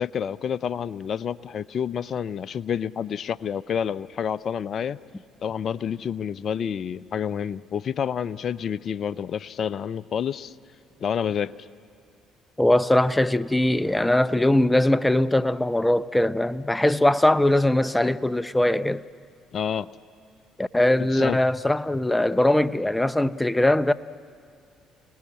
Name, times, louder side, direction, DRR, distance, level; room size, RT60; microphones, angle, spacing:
voice 1, 0.0-5.0 5.4-10.5 11.0-11.7 19.5-19.9 21.0-21.4, left 8 dB, 55° left, 0.6 m, -29 dB
voice 2, 12.6-19.0 20.6-23.9, left 1 dB, 10° left, 0.7 m, -21 dB
27.5 x 19.0 x 8.6 m
hypercardioid pair, 55°, 0 cm